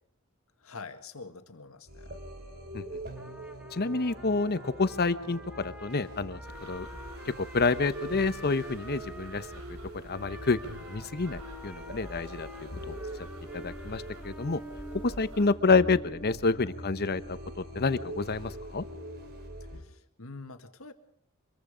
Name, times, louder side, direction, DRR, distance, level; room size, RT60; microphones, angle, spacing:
voice 1, 0.6-2.2 19.7-20.9, left 4 dB, 80° left, 8 dB, 1.9 m, -45 dB
sound 1, 1.9-19.8, right 1 dB, 50° right, 3.1 m, -43 dB
Trumpet, 3.2-9.6 10.1-15.4, equal, 5° right, 1.6 m, -50 dB
voice 2, 3.7-6.9 7.2-9.5 9.9-13.0 13.5-14.6 15.0-18.8, left 3 dB, 50° left, 13 dB, 1.0 m, -28 dB
sound 2, 6.4-15.5, right 2 dB, 90° right, 4.1 m, -50 dB
25.0 x 22.0 x 5.1 m, 0.65 s
head